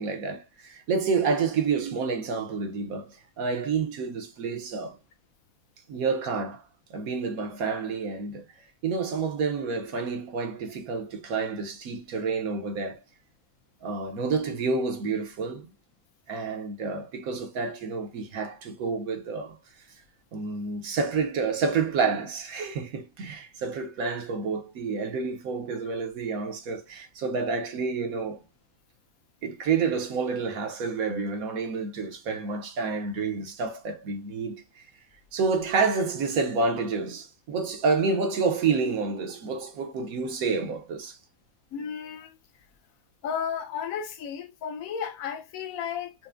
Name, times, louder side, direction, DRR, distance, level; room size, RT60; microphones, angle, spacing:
voice 1, 0.0-5.0 5.9-6.6 6.9-8.4 8.8-13.0 13.8-15.7 16.3-19.6 20.3-28.4 29.4-34.9 35.3-41.2, right 4 dB, 75° right, 1.3 m, -29 dB
voice 2, 41.7-42.3 43.2-46.1, left 7 dB, 75° left, 1.1 m, -33 dB
5.7 x 2.1 x 2.5 m
omnidirectional pair, 1.5 m